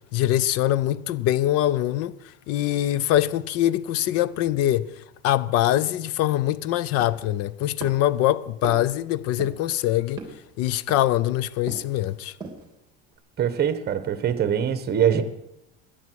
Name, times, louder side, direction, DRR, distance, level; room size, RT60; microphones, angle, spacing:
voice 1, 0.1-2.2 2.5-4.9 5.2-10.2 10.6-12.3, left 13 dB, 55° left, 0.6 m, -23 dB
sound 1, 7.0-7.4 7.8-8.2 8.6-9.0 9.4-9.8 10.2-10.5 10.9-11.3 11.7-12.0 12.3-12.7 13.1-13.2, right 3 dB, 15° right, 2.8 m, -39 dB
voice 2, 13.4-15.2, right 9 dB, 35° right, 1.3 m, -23 dB
18.0 x 11.0 x 4.7 m
supercardioid pair, 125°, 29 cm